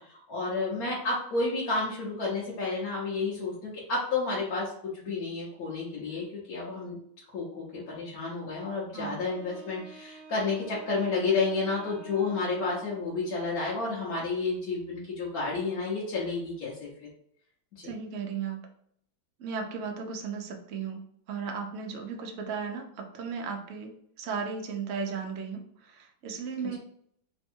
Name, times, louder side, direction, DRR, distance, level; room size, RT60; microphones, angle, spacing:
voice 1, 0.0-7.0 7.3-16.9 17.8-17.9, left 3 dB, 60° left, -6 dB, 1.2 m, -31 dB
Wind instrument woodwind instrument, 9.2-13.3, right 4 dB, 65° right, 1.3 m, -50 dB
voice 2, 17.8-18.6 19.4-23.9 24.2-26.8, right 5 dB, 80° right, 3 dB, 0.6 m, -35 dB
3.4 x 2.3 x 4.3 m, 0.67 s
omnidirectional pair, 2.0 m